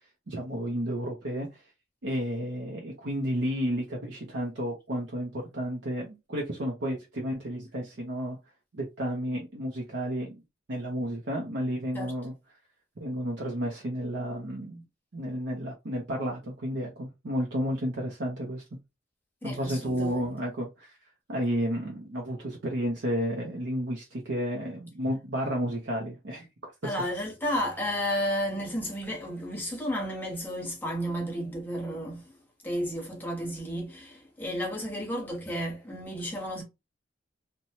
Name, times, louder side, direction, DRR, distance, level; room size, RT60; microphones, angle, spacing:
voice 1, 0.3-1.6 2.0-8.4 8.7-10.4 10.7-12.3 13.0-14.8 15.1-18.8 19.4-21.0 21.3-26.5 26.8-27.0, equal, 60° right, 0.6 m, -32 dB
voice 2, 19.4-20.3 26.8-32.3 32.6-36.6, equal, 10° left, 0.9 m, -32 dB
2.7 x 2.2 x 2.9 m
head